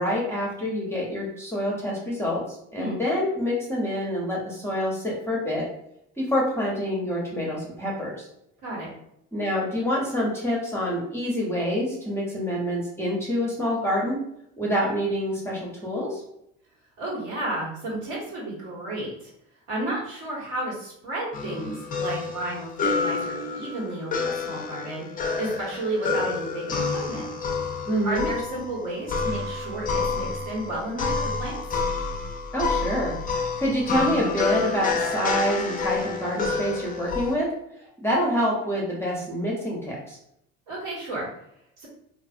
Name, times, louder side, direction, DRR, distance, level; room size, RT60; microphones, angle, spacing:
voice 1, 0.0-5.7 6.2-8.3 9.3-14.2 14.6-16.2 27.9-28.3 32.5-37.5 38.0-40.2, equal, 10° left, -4 dB, 0.8 m, -27 dB
voice 2, 17.0-19.3 19.7-25.1 25.4-27.3 28.0-31.6 40.7-41.3 41.8-41.9, right 1 dB, 65° right, -5 dB, 1.5 m, -32 dB
sound 1, 21.3-37.3, left 4 dB, 25° left, 0.5 m, -29 dB
2.5 x 2.4 x 2.5 m, 0.75 s
supercardioid pair, 80°, 33 cm